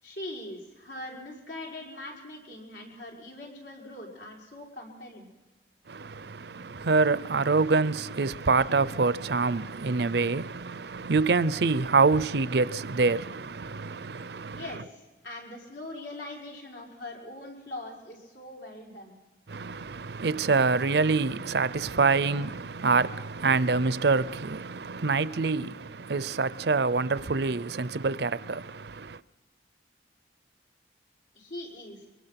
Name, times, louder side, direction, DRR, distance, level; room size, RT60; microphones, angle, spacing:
voice 1, 0.0-5.3 14.5-19.2 31.4-32.1, left 1 dB, 80° left, 5.4 m, -42 dB
voice 2, 5.9-14.6 19.5-29.2, right 4 dB, 65° right, 0.6 m, -26 dB
23.5 x 23.5 x 5.9 m
head